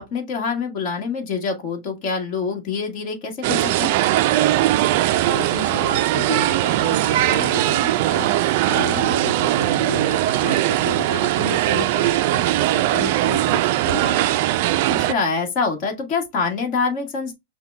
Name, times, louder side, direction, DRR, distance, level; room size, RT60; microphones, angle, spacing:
voice 1, 0.0-3.9 8.7-9.1 15.0-17.3, left 4 dB, 35° left, 1.4 m, -25 dB
sound 1, 3.4-15.1, right 14 dB, 45° right, 0.3 m, -20 dB
voice 2, 5.2-8.3 8.6-14.4, left 2 dB, 75° left, 1.1 m, -32 dB
5.7 x 2.2 x 3.2 m
supercardioid pair, 160°, 0 cm